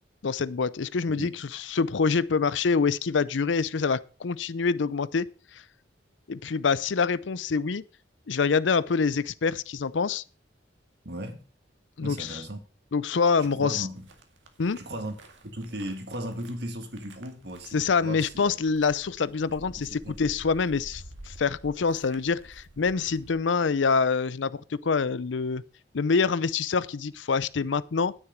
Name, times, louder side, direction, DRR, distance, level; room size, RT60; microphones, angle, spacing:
voice 1, 0.2-5.3 6.3-7.8 8.3-10.2 12.0-12.4 12.9-13.9 14.6-14.8 17.7-25.6 25.9-28.1, left 5 dB, 80° left, 0.5 m, -26 dB
voice 2, 11.0-11.4 12.0-12.6 13.4-14.1 14.8-15.2 15.4-18.5 19.9-20.2, right 1 dB, 60° right, 1.9 m, -37 dB
sound 1, 13.9-23.3, right 1 dB, 90° right, 2.0 m, -50 dB
9.9 x 9.8 x 5.0 m
head